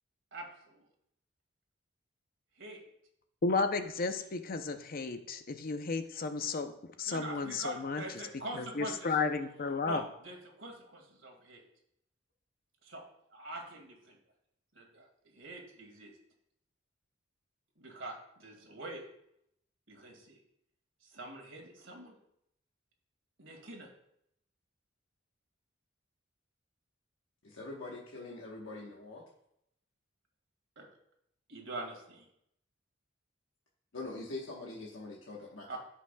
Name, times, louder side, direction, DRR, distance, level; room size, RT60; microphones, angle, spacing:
voice 1, 0.3-0.8 2.6-2.8 7.1-9.2 9.8-11.6 12.8-13.0 13.3-14.2 14.7-16.1 17.8-19.1 19.9-20.4 21.0-22.2 23.4-23.9 30.8-30.9 31.5-32.3 35.7-35.8, right 2 dB, 70° right, 1 dB, 2.1 m, -44 dB
voice 2, 3.4-6.7 7.0-8.0 8.5-10.0, left 4 dB, 45° left, 8 dB, 0.6 m, -33 dB
voice 3, 27.4-29.2 33.9-35.8, left 2 dB, 80° left, -2 dB, 1.2 m, -43 dB
14.5 x 5.8 x 2.3 m, 0.75 s
head